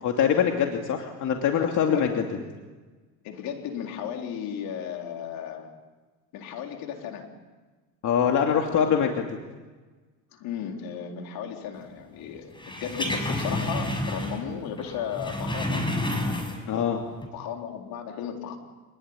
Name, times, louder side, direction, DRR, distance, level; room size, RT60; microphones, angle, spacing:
voice 1, 0.0-2.2 8.0-9.3 16.7-17.0, left 8 dB, 55° left, 2 dB, 2.8 m, -23 dB
voice 2, 1.9-2.5 3.2-5.7 6.3-7.3 10.3-15.9 17.3-18.6, left 8 dB, 75° left, 3 dB, 4.2 m, -35 dB
sound 1, 12.6-14.5 14.8-16.8 17.1-17.3, left 1 dB, 15° left, 6.1 m, -30 dB
27.0 x 20.0 x 9.9 m, 1.3 s
cardioid pair, 115°, 36 cm